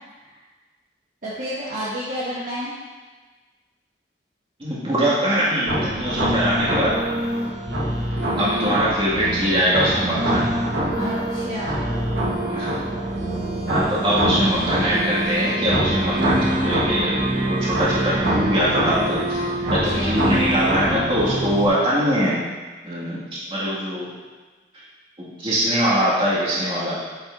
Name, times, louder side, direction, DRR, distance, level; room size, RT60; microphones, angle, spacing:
voice 1, 1.2-2.7 8.4-8.8 10.9-12.0 19.6-20.2, equal, 50° right, -9 dB, 1.3 m, -30 dB
voice 2, 4.6-6.9 8.4-10.5 12.5-12.7 13.7-17.2 17.4-19.4 19.7-22.4 22.8-24.1 25.2-27.0, equal, 30° right, -8 dB, 2.2 m, -22 dB
sound 1, 5.7-21.7, right 1 dB, 85° right, 1.5 m, -24 dB
9.4 x 5.8 x 2.7 m, 1.3 s
head